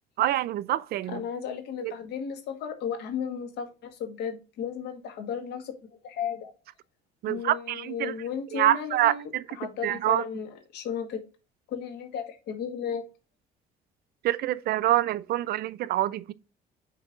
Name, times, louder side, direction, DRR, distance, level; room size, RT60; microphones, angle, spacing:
voice 1, 0.2-1.2 1.8-1.9 7.2-8.1 8.5-9.4 9.8-10.2 14.2-16.3, right 14 dB, 65° right, 0.5 m, -26 dB
voice 2, 1.1-5.7 6.0-6.5 7.3-11.2 11.7-13.1, left 7 dB, 80° left, 1.9 m, -34 dB
5.7 x 4.5 x 5.9 m
cardioid pair, 110°, 17 cm